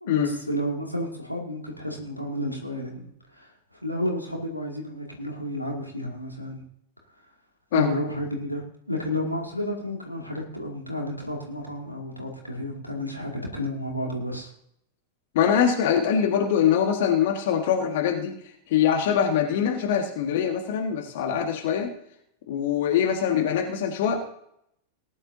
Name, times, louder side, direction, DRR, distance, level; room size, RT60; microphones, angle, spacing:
voice 1, 0.0-3.5 3.8-6.6 7.7-14.5, equal, 90° left, 0 dB, 2.4 m, -31 dB
voice 2, 15.4-18.4 18.7-21.9 22.5-24.2, left 8 dB, 55° left, 3 dB, 1.7 m, -23 dB
19.0 x 10.5 x 2.7 m, 0.72 s
figure-of-eight pair, 90°, 0 cm